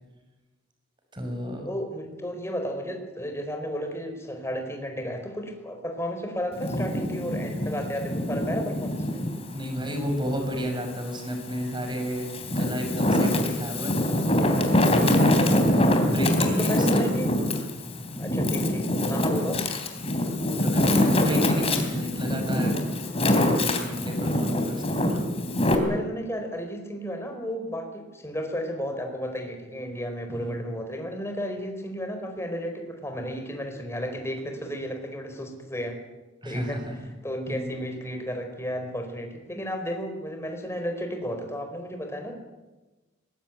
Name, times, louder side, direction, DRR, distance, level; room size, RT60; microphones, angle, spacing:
voice 1, 1.1-1.6 9.5-13.9 14.9-15.5 16.1-17.2 18.0-18.2 20.6-22.8 23.2-25.0 30.3-30.6 36.4-37.0 37.5-37.7, equal, 25° right, 4 dB, 5.7 m, -32 dB
voice 2, 1.6-9.2 15.0-15.3 16.6-17.3 18.2-19.6 25.7-36.0 36.4-36.8 37.2-42.4, equal, 15° left, 4 dB, 4.7 m, -33 dB
Wind, 6.5-9.4 9.9-11.2 11.8-25.7, left 1 dB, 30° left, 3.5 m, -24 dB
23.0 x 20.5 x 9.2 m, 1.1 s
head